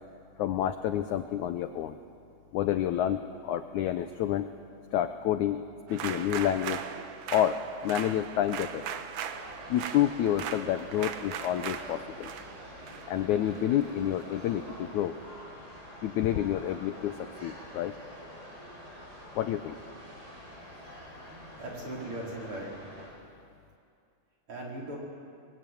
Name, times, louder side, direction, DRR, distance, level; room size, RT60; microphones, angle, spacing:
voice 1, 0.4-2.0 2.5-4.5 4.9-5.6 5.9-6.8 7.3-8.8 9.7-12.3 13.1-15.1 16.0-17.9 19.4-19.8 20.9-21.0, left 11 dB, 75° left, 9 dB, 1.8 m, -29 dB
sound 1, 5.9-14.2, right 8 dB, 70° right, 2.2 m, -39 dB
sound 2, 9.3-23.1, equal, 20° right, 5.8 m, -47 dB
voice 2, 21.3-22.7 24.5-25.0, right 1 dB, 35° right, -3 dB, 5.1 m, -39 dB
25.0 x 21.0 x 9.4 m, 2.4 s
omnidirectional pair, 4.2 m